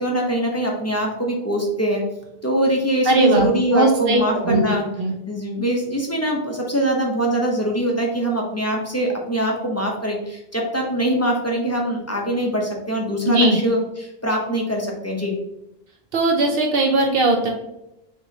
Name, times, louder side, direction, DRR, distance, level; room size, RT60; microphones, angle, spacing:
voice 1, 0.0-2.0 2.4-4.8 5.3-15.4, right 1 dB, 20° left, -1 dB, 0.6 m, -23 dB
voice 2, 3.1-5.1 13.3-13.6 16.1-17.5, right 2 dB, 70° right, 2 dB, 0.8 m, -19 dB
4.7 x 3.0 x 2.7 m, 0.86 s
omnidirectional pair, 1.0 m